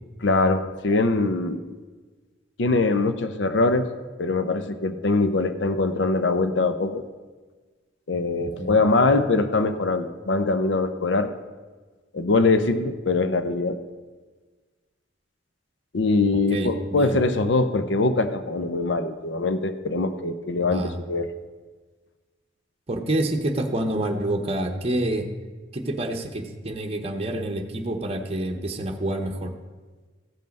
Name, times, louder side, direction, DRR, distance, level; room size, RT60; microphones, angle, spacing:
voice 1, 0.2-1.8 2.6-7.0 8.1-11.3 12.1-13.8 15.9-21.3, left 3 dB, 75° left, 10 dB, 0.6 m, -23 dB
voice 2, 8.4-8.8 16.5-17.2 20.7-21.0 22.9-25.3 25.7-29.5, right 1 dB, 30° right, 3 dB, 0.9 m, -27 dB
15.5 x 5.5 x 5.3 m, 1.4 s
head